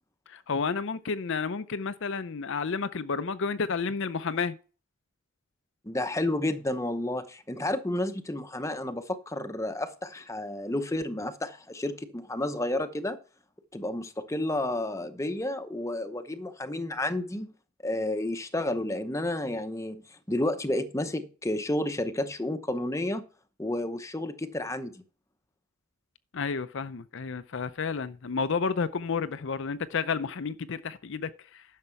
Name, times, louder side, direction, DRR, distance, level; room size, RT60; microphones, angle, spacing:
voice 1, 0.3-4.6 26.3-31.6, left 5 dB, 60° left, 0.5 m, -31 dB
voice 2, 5.8-13.2 13.7-17.5 17.8-23.3 23.6-25.0, left 1 dB, 15° left, 0.8 m, -31 dB
11.0 x 6.7 x 4.6 m
head